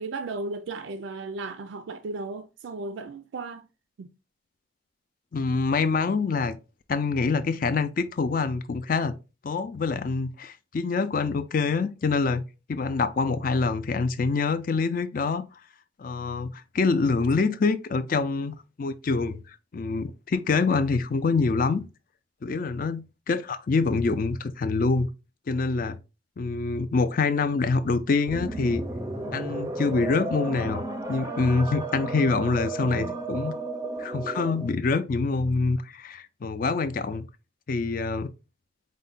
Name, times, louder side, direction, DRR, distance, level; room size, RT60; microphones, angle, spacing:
voice 1, 0.0-3.7 4.0-4.1 32.8-33.2, right 3 dB, 80° right, 0.4 m, -35 dB
voice 2, 5.3-6.6 6.9-9.1 9.4-12.4 12.7-15.4 16.0-21.8 22.4-25.1 25.5-26.0 26.4-28.8 29.3-30.8 31.1-33.5 34.0-37.3 37.7-38.3, left 4 dB, 45° left, 0.4 m, -25 dB
sound 1, 28.3-34.8, right 2 dB, 15° right, 0.5 m, -33 dB
4.5 x 2.2 x 3.9 m
head